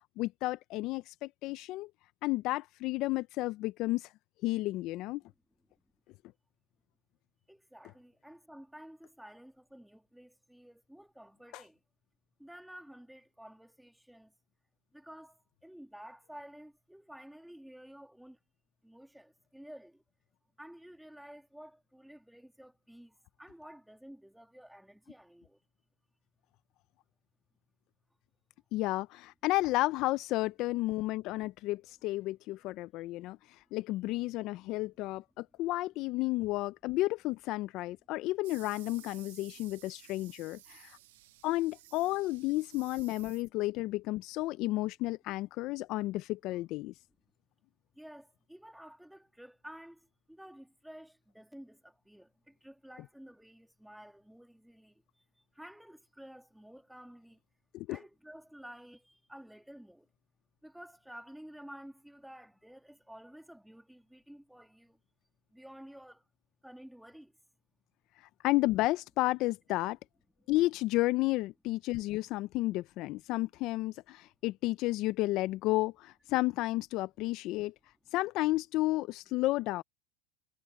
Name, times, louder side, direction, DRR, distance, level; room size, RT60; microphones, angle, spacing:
voice 1, 0.2-1.9 2.2-4.1 4.4-5.2 11.5-11.6 28.7-41.0 41.4-46.9 57.7-58.0 68.4-70.0 70.5-77.7 78.1-79.8, left 18 dB, 55° left, 0.6 m, -32 dB
voice 2, 7.5-11.8 12.4-14.3 14.9-18.4 18.8-20.0 20.6-25.6 34.3-34.7 47.9-57.4 57.9-60.1 60.6-65.0 65.5-66.2 66.6-67.4 70.4-70.5, equal, ahead, 2.8 m, -52 dB
sound 1, 38.4-43.8, right 17 dB, 75° right, 1.6 m, -55 dB
supercardioid pair, 105°, 0 cm